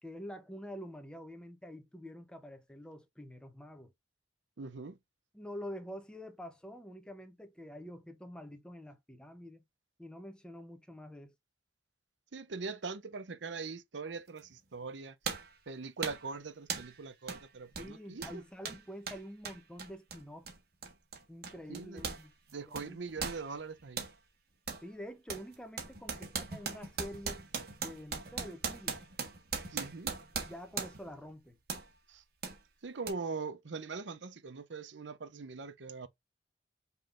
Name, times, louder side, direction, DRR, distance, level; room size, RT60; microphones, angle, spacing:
voice 1, 0.0-3.9 5.3-9.6 10.0-11.3 17.8-20.5 21.3-22.3 22.7-23.0 24.8-27.4 27.8-29.0 30.4-31.6, equal, 5° left, 0.9 m, -47 dB
voice 2, 4.6-5.0 12.3-15.2 15.7-18.4 21.7-22.0 22.5-24.0 29.7-30.1 32.1-32.2 32.8-36.1, right 4 dB, 85° right, 0.7 m, -42 dB
sound 1, 14.4-14.5 15.2-15.6 16.0-16.3 16.7-17.0 17.3-17.4 17.7-22.2 22.5-24.1 24.7-24.9 25.3-31.1 31.7-31.9 32.4-32.6 33.1-33.2, right 5 dB, 60° right, 1.5 m, -39 dB
5.5 x 3.7 x 2.5 m
head